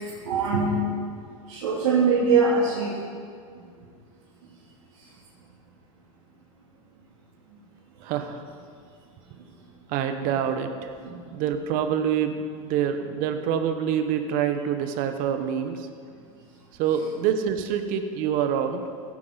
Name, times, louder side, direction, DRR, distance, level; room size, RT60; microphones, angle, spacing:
voice 1, 0.2-0.9 1.5-2.9 11.0-11.2, right 4 dB, 85° right, -7 dB, 2.9 m, -22 dB
voice 2, 8.0-8.4 9.9-10.9 11.3-15.9 16.8-18.8, right 8 dB, 55° right, 7 dB, 1.2 m, -26 dB
16.0 x 9.6 x 4.1 m, 2.2 s
supercardioid pair, 115°, 18 cm